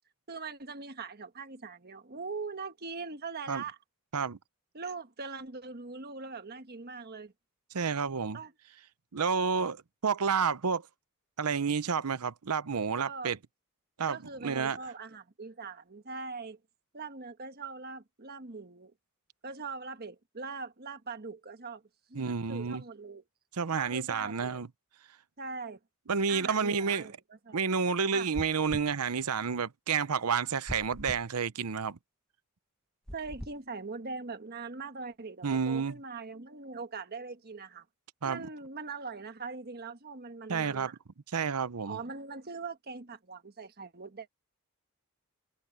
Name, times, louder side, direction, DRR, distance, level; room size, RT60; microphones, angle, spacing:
voice 1, 0.3-3.8 4.7-7.3 8.3-8.5 12.9-13.4 14.1-16.6 16.9-18.9 19.4-21.8 22.1-23.2 23.7-24.6 25.4-25.8 26.3-27.1 27.5-27.6 28.1-28.3 33.1-37.8 38.2-41.0 41.9-44.3, right 4 dB, 45° right, 1.4 m, -41 dB
voice 2, 7.7-8.4 9.1-10.8 11.4-13.4 14.0-14.2 14.4-14.8 22.1-22.8 23.6-24.7 26.1-27.1 27.5-32.0 35.4-36.0 38.2-38.5 40.5-40.9 41.3-42.0, right 5 dB, 90° right, 0.8 m, -30 dB
sound 1, 28.3-28.9 30.7-31.3 33.1-33.6, equal, 5° left, 1.1 m, -41 dB
head